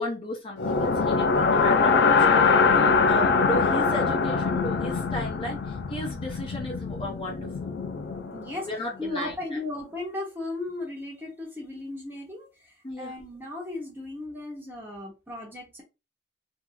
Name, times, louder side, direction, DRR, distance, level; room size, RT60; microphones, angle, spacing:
voice 1, 0.0-7.7 8.6-9.6 12.8-13.1, left 1 dB, 30° left, 0.9 m, -35 dB
sound 1, 0.6-8.6, left 4 dB, 65° left, 0.3 m, -23 dB
voice 2, 8.3-8.7 9.0-15.8, left 2 dB, 10° right, 1.0 m, -36 dB
2.8 x 2.2 x 3.7 m
head